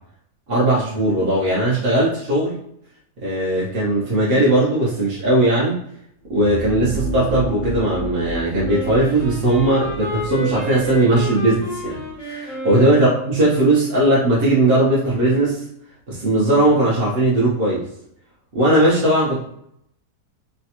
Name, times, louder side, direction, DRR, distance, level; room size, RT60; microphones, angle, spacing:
voice 1, 0.5-2.5 3.2-5.8 6.3-15.6 16.1-17.9 18.5-19.4, right 1 dB, 50° right, -7 dB, 0.7 m, -18 dB
sound 1, 6.2-12.2, right 2 dB, 60° left, 0.8 m, -31 dB
Wind instrument woodwind instrument, 8.6-13.4, equal, 25° left, 0.6 m, -30 dB
3.2 x 2.2 x 2.8 m, 0.73 s
omnidirectional pair, 1.7 m